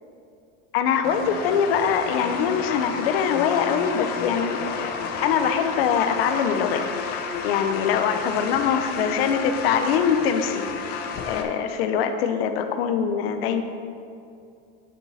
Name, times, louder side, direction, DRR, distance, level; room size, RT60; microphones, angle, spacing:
voice 1, 0.7-4.6 5.2-6.8 7.4-10.6 11.2-13.6, left 7 dB, 85° left, 7 dB, 0.9 m, -23 dB
sound 1, 1.0-11.4, left 6 dB, 35° left, 0.7 m, -31 dB
9.8 x 7.3 x 4.2 m, 2.5 s
cardioid pair, 180°, 29 cm